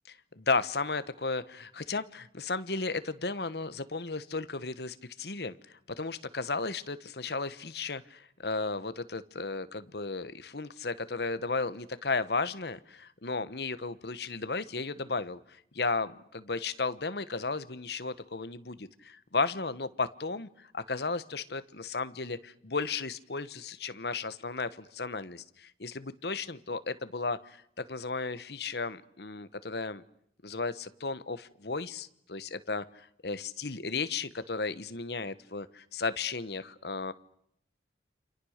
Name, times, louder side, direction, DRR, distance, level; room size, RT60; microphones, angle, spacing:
voice 1, 0.1-5.5 5.9-27.6 27.9-30.0 30.4-35.7 35.9-37.1, left 4 dB, 65° left, 14 dB, 1.2 m, -34 dB
29.0 x 27.0 x 6.6 m, 0.72 s
head